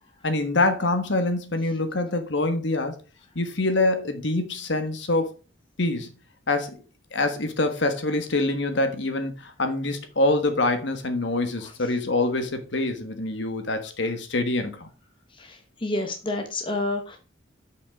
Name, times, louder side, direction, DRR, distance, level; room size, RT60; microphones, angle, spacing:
voice 1, 0.2-3.0 3.3-5.3 5.8-6.1 6.5-6.8 7.1-14.9, left 2 dB, 60° left, 1.3 m, -25 dB
voice 2, 15.4-17.2, left 2 dB, 25° left, 1.0 m, -29 dB
7.3 x 5.4 x 4.5 m
head